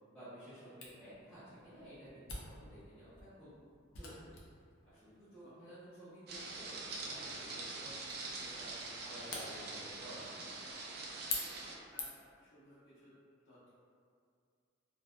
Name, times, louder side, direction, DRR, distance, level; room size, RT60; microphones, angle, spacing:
voice 1, 0.1-3.5 3.9-4.3 4.8-8.7 9.0-10.5, right 1 dB, 5° left, -18 dB, 0.6 m, -53 dB
Camera, 0.8-12.4, left 3 dB, 80° left, 0.5 m, -48 dB
sound 1, 6.3-11.8, right 3 dB, 50° right, 0.3 m, -44 dB
voice 2, 11.9-13.2 13.5-13.7, equal, 60° left, -11 dB, 0.8 m, -60 dB
2.6 x 2.1 x 2.2 m, 2.3 s
head